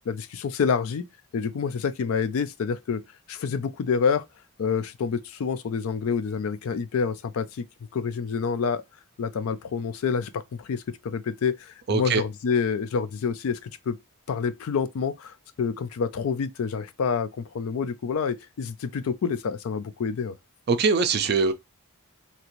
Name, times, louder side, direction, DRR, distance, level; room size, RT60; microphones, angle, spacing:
voice 1, 0.1-1.0 1.3-3.0 3.3-4.3 4.6-7.6 7.9-8.8 9.2-14.0 14.3-20.4, left 6 dB, 75° left, 0.4 m, -28 dB
voice 2, 11.9-12.2 20.7-21.5, right 4 dB, 45° right, 0.4 m, -22 dB
2.8 x 2.5 x 2.9 m
head